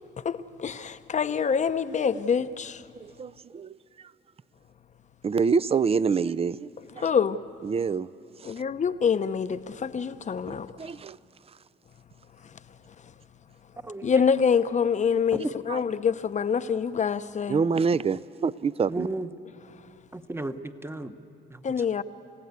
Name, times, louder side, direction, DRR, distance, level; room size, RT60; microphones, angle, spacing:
voice 1, 0.2-2.8 7.0-7.4 8.4-10.7 14.0-17.6 21.6-22.0, left 6 dB, 35° left, 0.7 m, -26 dB
voice 2, 3.0-3.8 5.2-6.7 7.0-7.1 7.6-8.1 8.4-8.5 10.8-11.2 15.7-15.8 17.5-19.1, right 5 dB, 30° right, 0.5 m, -26 dB
voice 3, 18.9-19.3 20.1-21.1 21.5-21.6, right 2 dB, 10° right, 0.9 m, -34 dB
30.0 x 16.0 x 8.2 m
cardioid pair, 90°, 20 cm